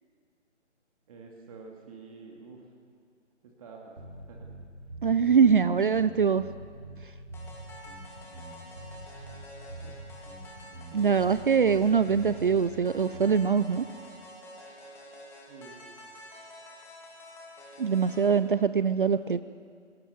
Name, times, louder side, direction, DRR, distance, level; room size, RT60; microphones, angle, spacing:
voice 1, 1.1-2.7 3.4-4.0 4.3-4.5 5.7-5.9 6.2-6.4 15.5-15.8, right 4 dB, 30° right, 0 dB, 2.4 m, -49 dB
sound 1, 4.0-13.5, right 1 dB, 65° right, 6.7 m, -45 dB
voice 2, 5.0-6.4 10.9-13.8 17.8-19.4, right 6 dB, 45° right, 14 dB, 0.5 m, -23 dB
sound 2, 7.3-18.4, equal, 5° left, 2.5 m, -48 dB
27.0 x 18.5 x 6.9 m, 2.2 s
figure-of-eight pair, 145°, 36 cm